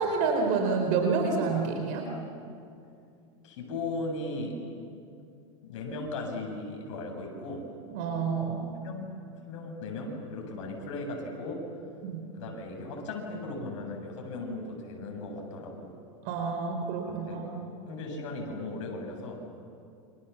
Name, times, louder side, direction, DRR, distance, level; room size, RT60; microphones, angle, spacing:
voice 1, 0.0-2.0 7.9-8.7 12.0-12.2 16.2-17.7, right 5 dB, 55° right, 3 dB, 4.4 m, -28 dB
voice 2, 3.4-4.6 5.6-7.7 8.7-9.1 9.4-11.7 12.3-15.9 17.1-17.4 17.9-19.3, left 2 dB, 70° left, 1 dB, 7.9 m, -37 dB
29.0 x 26.5 x 7.3 m, 2.4 s
supercardioid pair, 120°, 17 cm